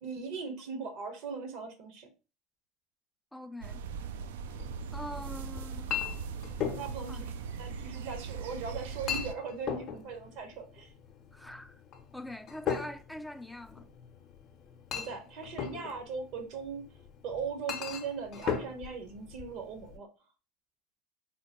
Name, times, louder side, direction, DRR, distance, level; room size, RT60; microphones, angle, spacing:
voice 1, 0.0-2.1 6.7-7.3 7.6-10.9 14.9-16.9 17.2-20.1, right 5 dB, 65° right, 1.0 m, -39 dB
voice 2, 3.3-3.8 4.9-6.0 7.1-7.2 11.3-11.8 12.1-13.9, left 1 dB, 5° left, 0.3 m, -43 dB
sound 1, 3.6-9.3, right 6 dB, 80° right, 0.3 m, -40 dB
Chink clink, 4.4-20.0, left 8 dB, 50° left, 0.6 m, -39 dB
3.7 x 2.1 x 2.9 m
hypercardioid pair, 90°, 0 cm